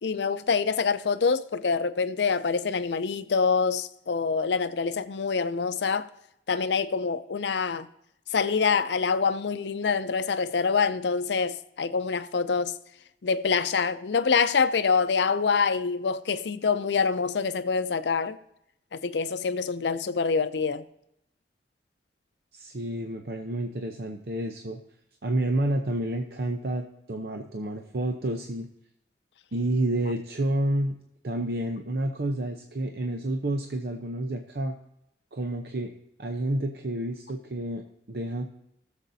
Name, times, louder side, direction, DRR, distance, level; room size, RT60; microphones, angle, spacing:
voice 1, 0.0-6.1 6.5-7.9 8.3-12.7 13.2-18.4 18.9-20.8, left 5 dB, 80° left, 0.5 m, -26 dB
voice 2, 22.5-24.8 25.2-28.7 29.5-31.0 31.2-34.8 35.3-35.9 36.2-38.5, right 1 dB, 60° right, 0.7 m, -29 dB
18.5 x 7.2 x 2.7 m
head